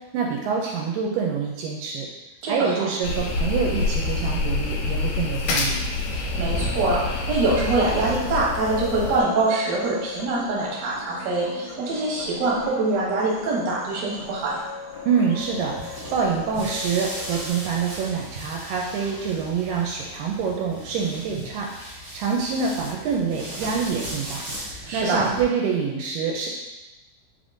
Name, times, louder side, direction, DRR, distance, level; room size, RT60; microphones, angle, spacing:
voice 1, 0.1-2.1 2.5-5.8 15.1-26.5, right 6 dB, 85° right, -1 dB, 2.1 m, -26 dB
voice 2, 2.4-2.9 6.1-14.6 24.9-25.3, right 2 dB, 65° right, -5 dB, 2.0 m, -24 dB
sound 1, 3.0-9.2, left 3 dB, 85° left, 2.3 m, -26 dB
sound 2, 6.3-17.5, left 3 dB, 70° left, 1.1 m, -39 dB
sound 3, 15.4-25.4, right 1 dB, 45° right, 1.7 m, -37 dB
4.9 x 3.5 x 2.5 m, 1.0 s
omnidirectional pair, 3.9 m